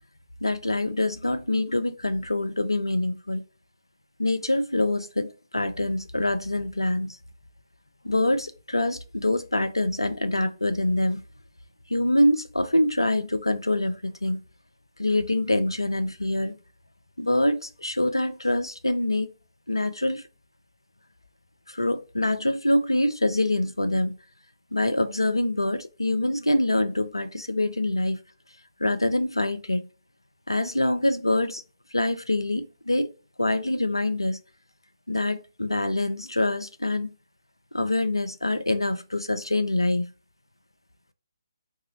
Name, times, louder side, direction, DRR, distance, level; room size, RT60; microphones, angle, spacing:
voice 1, 0.4-3.4 4.2-7.2 8.0-11.2 11.9-14.4 15.0-16.6 17.2-19.3 19.7-20.2 21.7-24.2 24.7-28.2 28.8-29.9 30.5-31.6 31.9-33.1 33.4-34.4 35.1-37.1 37.7-40.1, left 1 dB, 90° left, 0.5 m, -25 dB
3.9 x 2.7 x 2.5 m
figure-of-eight pair, 140°, 2 cm